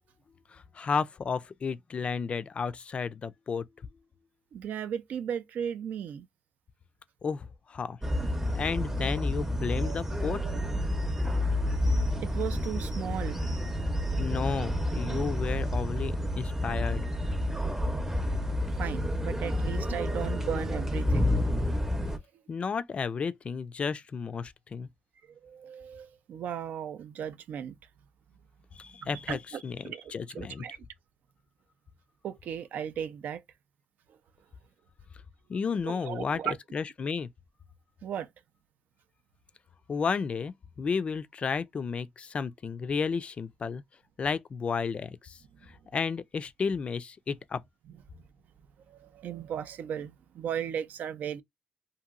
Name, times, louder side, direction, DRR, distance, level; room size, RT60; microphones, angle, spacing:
voice 1, 0.5-3.7 7.2-8.0 8.5-10.4 14.2-17.0 22.5-24.9 28.7-30.6 35.5-36.4 36.7-37.3 39.9-43.8 44.2-45.4 45.9-47.6, left 5 dB, 40° left, 0.3 m, -32 dB
voice 2, 4.5-6.3 9.8-10.0 10.4-10.6 11.4-11.5 12.2-13.6 18.8-21.4 25.3-27.8 29.0-30.8 32.2-33.4 35.8-36.6 38.0-38.3 48.1-48.2 48.9-51.4, right 8 dB, 80° right, 0.4 m, -36 dB
sound 1, 8.0-22.2, left 1 dB, 15° right, 0.6 m, -29 dB
2.9 x 2.6 x 2.4 m
cardioid pair, 110°, 3 cm